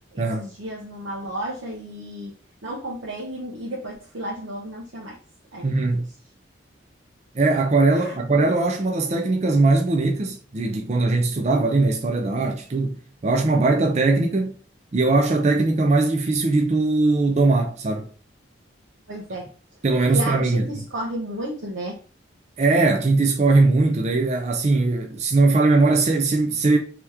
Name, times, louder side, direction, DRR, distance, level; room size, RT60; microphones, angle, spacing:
voice 1, 0.1-2.3 2.6-5.2 5.5-5.7 7.9-8.1 19.1-19.5 20.1-22.0, right 1 dB, 85° right, 0.9 m, -32 dB
voice 2, 5.6-6.1 7.3-13.0 13.2-14.5 14.9-18.1 19.8-20.6 22.6-26.8, right 3 dB, 35° right, 0.4 m, -20 dB
3.4 x 2.9 x 3.4 m
head